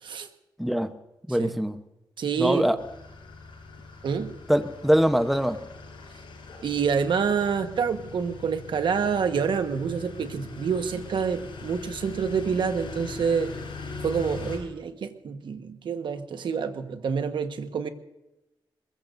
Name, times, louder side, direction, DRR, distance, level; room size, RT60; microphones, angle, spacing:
voice 1, 0.6-0.9 1.3-1.8 2.4-2.8 4.5-5.6, equal, ahead, 9 dB, 0.9 m, -23 dB
voice 2, 2.2-2.6 4.0-4.3 6.6-13.5 14.0-17.9, right 6 dB, 70° right, 8 dB, 1.3 m, -27 dB
sound 1, 2.8-14.6, left 4 dB, 90° left, 7.0 m, -41 dB
22.5 x 21.5 x 2.6 m, 0.97 s
wide cardioid pair, 135°, 8 cm